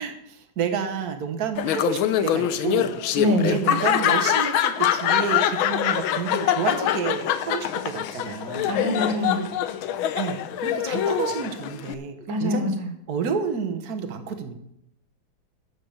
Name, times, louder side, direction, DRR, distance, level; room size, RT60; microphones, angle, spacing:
voice 1, 0.0-3.0 3.4-8.8 10.1-12.7 13.1-14.5, right 6 dB, 50° right, 6 dB, 1.7 m, -30 dB
Laughter, 1.6-11.9, left 11 dB, 85° left, 1.6 m, -24 dB
voice 2, 3.2-3.6 8.7-9.4 12.3-12.9, equal, 70° right, 5 dB, 2.5 m, -24 dB
12.5 x 6.7 x 7.2 m, 0.77 s
omnidirectional pair, 2.2 m